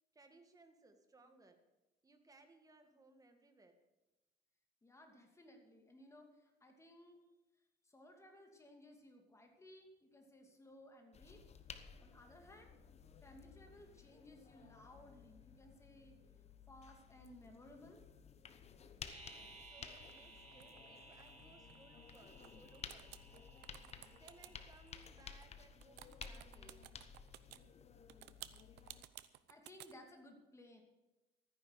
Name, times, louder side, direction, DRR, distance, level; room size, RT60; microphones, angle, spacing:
voice 1, 0.1-1.6 2.0-3.8 19.2-23.6 24.1-27.1, right 3 dB, 20° right, 6 dB, 1.8 m, -65 dB
voice 2, 4.8-7.2 7.8-11.4 12.0-12.7 13.2-16.2 16.7-18.0 29.5-30.8, left 1 dB, 15° left, 3 dB, 2.7 m, -60 dB
sound 1, 11.1-29.0, left 6 dB, 40° left, 1.1 m, -56 dB
sound 2, 19.1-25.0, right 2 dB, 40° right, 3.0 m, -59 dB
sound 3, 20.0-22.5 22.7-27.6 28.1-29.9, right 16 dB, 90° right, 0.7 m, -56 dB
13.5 x 9.8 x 6.6 m, 1.1 s
cardioid pair, 110°, 17 cm